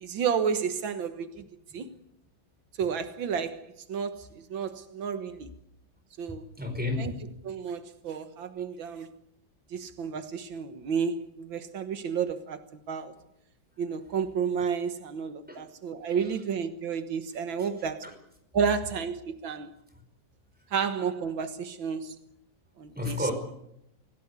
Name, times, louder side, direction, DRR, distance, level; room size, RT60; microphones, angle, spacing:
voice 1, 0.0-1.4 1.7-1.9 2.8-3.6 3.9-5.5 6.2-6.5 7.0-7.1 7.4-9.1 9.7-12.6 12.9-13.1 13.8-18.0 18.5-19.7 20.7-22.2 22.8-23.3, right 6 dB, 85° right, 2.1 m, -31 dB
voice 2, 6.6-7.1 15.5-15.6 17.6-17.7 18.0-18.1 22.9-23.3, left 2 dB, 5° right, 4.9 m, -31 dB
26.0 x 16.5 x 8.3 m
omnidirectional pair, 2.1 m